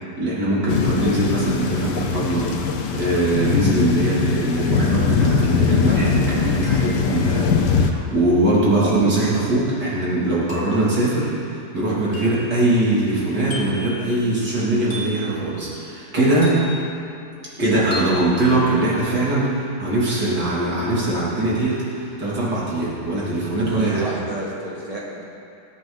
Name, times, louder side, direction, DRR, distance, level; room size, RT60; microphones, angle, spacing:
voice 1, 0.2-16.6 17.6-24.0, right 2 dB, 80° right, -7 dB, 3.4 m, -21 dB
sound 1, 0.7-7.9, left 5 dB, 85° left, 1.4 m, -21 dB
sound 2, 6.6-7.2 8.9-9.2 10.5-10.8 12.1-12.5 13.5-13.9 14.9-15.3 16.4-16.9 17.9-18.2, left 1 dB, 45° left, 2.9 m, -36 dB
voice 2, 23.6-25.2, right 3 dB, 20° right, -5 dB, 2.2 m, -29 dB
20.0 x 8.3 x 4.0 m, 2.6 s
omnidirectional pair, 1.8 m